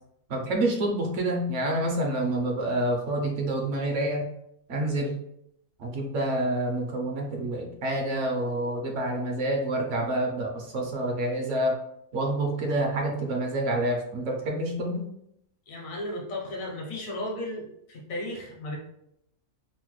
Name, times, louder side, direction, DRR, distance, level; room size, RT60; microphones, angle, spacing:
voice 1, 0.3-4.2 4.7-5.1 5.8-11.8 12.1-15.1, right 1 dB, 65° right, 1 dB, 0.9 m, -28 dB
voice 2, 15.7-18.8, left 1 dB, 75° left, -1 dB, 1.2 m, -35 dB
3.1 x 2.1 x 3.0 m, 0.75 s
omnidirectional pair, 1.4 m